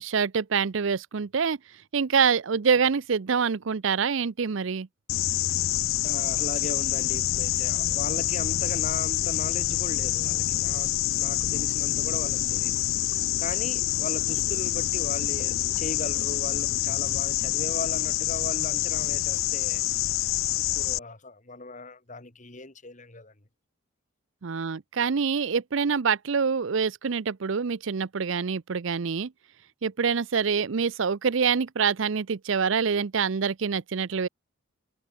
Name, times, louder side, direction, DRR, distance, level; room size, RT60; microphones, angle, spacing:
voice 1, 0.0-1.6 1.9-4.9 24.4-29.3 29.8-34.3, right 6 dB, 65° right, 0.6 m, -26 dB
sound 1, 5.1-21.0, left 15 dB, 70° left, 0.4 m, -27 dB
voice 2, 6.0-12.8 13.4-19.8 20.7-23.3, left 2 dB, 35° left, 2.0 m, -38 dB
head